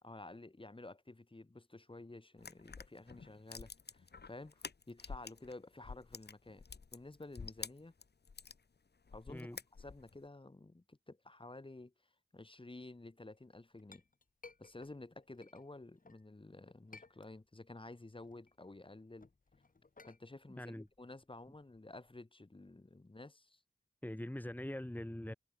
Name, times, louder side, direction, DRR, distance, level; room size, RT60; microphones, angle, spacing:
voice 1, 0.0-6.6 6.9-7.9 9.1-9.5 9.8-11.9 12.3-14.0 14.6-19.3 20.1-23.6, left 2 dB, 30° left, 3.3 m, -52 dB
sound 1, 2.4-5.5 5.8-8.6 9.1-10.2, left 5 dB, 65° left, 3.6 m, -49 dB
Chink clink, 13.4-16.2 16.7-17.7 18.1-22.2, left 3 dB, 50° left, 3.1 m, -61 dB
voice 2, 20.6-20.9 24.0-25.3, left 1 dB, 10° left, 2.6 m, -43 dB
cardioid pair, 60°, 18 cm